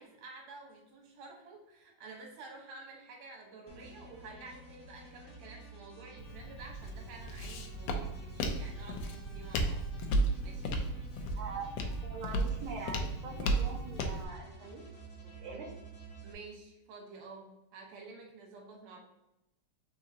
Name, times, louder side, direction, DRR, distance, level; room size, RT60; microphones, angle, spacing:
voice 1, 0.0-9.9 10.4-10.8 16.2-19.0, right 3 dB, 85° right, 0 dB, 2.6 m, -50 dB
sound 1, 3.7-16.3, right 2 dB, 70° left, 0.6 m, -52 dB
Walk footsteps, 6.2-14.2, right 1 dB, 85° left, 1.4 m, -34 dB
sound 2, 8.2-14.3, left 2 dB, 45° right, 1.7 m, -54 dB
voice 2, 11.3-14.9 15.2-15.7, right 4 dB, 65° right, -2 dB, 1.4 m, -43 dB
5.3 x 3.7 x 2.7 m, 0.88 s
omnidirectional pair, 3.5 m